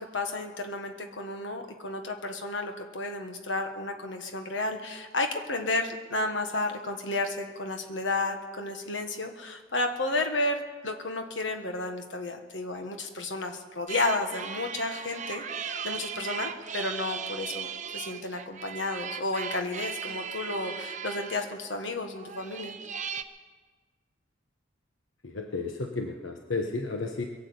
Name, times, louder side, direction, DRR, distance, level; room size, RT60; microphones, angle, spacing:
voice 1, 0.0-22.7, left 2 dB, 70° left, 5 dB, 1.5 m, -32 dB
sound 1, 13.9-23.2, right 7 dB, 40° right, 0.6 m, -38 dB
voice 2, 25.2-27.3, left 3 dB, 85° left, 3 dB, 1.1 m, -32 dB
22.0 x 7.5 x 8.0 m, 1.4 s
head